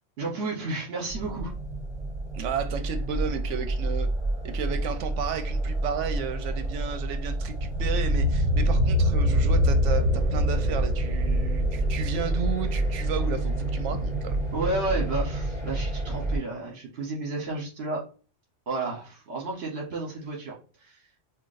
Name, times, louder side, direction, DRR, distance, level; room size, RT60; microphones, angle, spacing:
voice 1, 0.2-1.5 14.5-18.0 18.7-20.6 20.8-20.9, right 2 dB, 60° right, 1.2 m, -31 dB
sound 1, 1.1-16.4, right 1 dB, 20° left, 1.6 m, -26 dB
voice 2, 2.3-4.1 4.4-14.4, right 6 dB, 75° right, 0.9 m, -33 dB
5.8 x 2.4 x 2.5 m
omnidirectional pair, 1.3 m